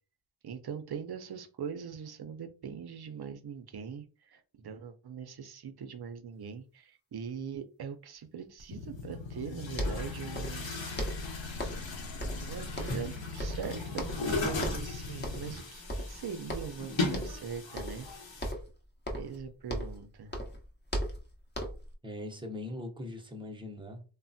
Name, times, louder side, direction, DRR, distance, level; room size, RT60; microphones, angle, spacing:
voice 1, 0.4-10.8 12.5-18.1 19.1-20.4, right 7 dB, 55° right, 0.5 m, -42 dB
Chatter / Gurgling / Tap, 8.6-8.7 9.4-18.5, left 3 dB, 75° left, 0.9 m, -38 dB
sound 1, 8.7-15.6, left 5 dB, 55° left, 0.5 m, -42 dB
sound 2, 9.4-9.5 9.7-10.7 11.0-11.9 12.2-13.1 13.4-14.3 14.6-14.9 15.2-15.6 15.9-16.8 17.1-17.4 17.8-18.1 18.4-20.0 20.3-21.9, equal, 20° left, 0.7 m, -37 dB
voice 2, 22.0-24.0, left 2 dB, 10° right, 0.6 m, -41 dB
3.2 x 2.1 x 2.6 m
wide cardioid pair, 60°, 46 cm